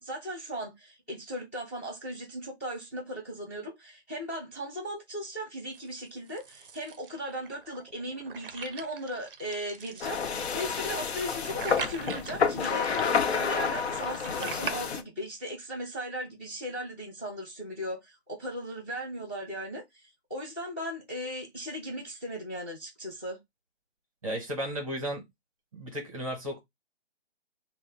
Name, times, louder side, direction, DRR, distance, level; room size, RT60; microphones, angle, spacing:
voice 1, 0.0-19.8 20.3-23.4, equal, 10° left, 0.7 m, -37 dB
sound 1, 5.7-14.7, right 5 dB, 55° right, 0.4 m, -42 dB
sound 2, 10.0-15.0, left 6 dB, 70° left, 0.6 m, -29 dB
voice 2, 24.2-25.2 25.7-26.6, equal, 30° right, 0.8 m, -34 dB
2.5 x 2.0 x 3.8 m
hypercardioid pair, 170°, 34 cm